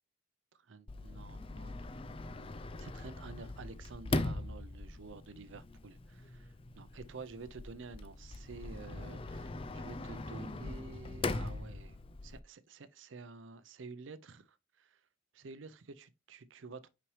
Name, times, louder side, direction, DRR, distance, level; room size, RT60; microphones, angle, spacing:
voice 1, 0.5-2.4 2.8-12.0 12.2-15.0 15.3-16.9, right 4 dB, 90° right, 0.6 m, -50 dB
Sliding door, 0.9-12.4, left 2 dB, 30° left, 0.4 m, -41 dB
5.8 x 5.1 x 3.1 m
head